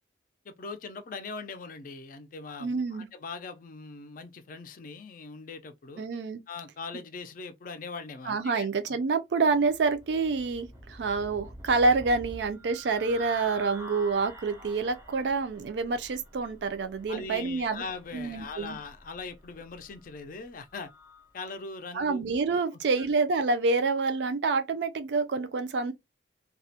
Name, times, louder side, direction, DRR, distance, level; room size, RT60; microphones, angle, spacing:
voice 1, 0.4-6.1 6.5-9.0 17.1-20.9 21.3-22.2, left 4 dB, 50° left, 0.4 m, -41 dB
voice 2, 2.6-3.1 6.0-6.4 8.3-17.8 18.1-18.8 21.9-25.9, right 4 dB, 70° right, 0.4 m, -27 dB
sound 1, 9.5-21.3, right 1 dB, 15° right, 0.5 m, -48 dB
2.3 x 2.1 x 2.7 m
head